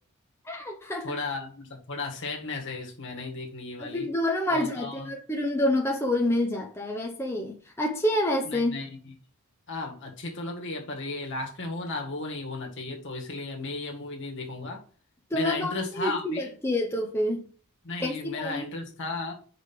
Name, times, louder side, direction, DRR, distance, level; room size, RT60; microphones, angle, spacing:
voice 1, 0.4-1.2 3.8-8.7 15.3-17.4 18.0-18.7, left 1 dB, 10° left, 0.8 m, -28 dB
voice 2, 1.0-4.1 4.5-5.1 8.4-9.1 9.7-14.8 15.3-16.5 17.8-19.3, left 3 dB, 55° left, 1.8 m, -35 dB
5.2 x 5.1 x 5.9 m
head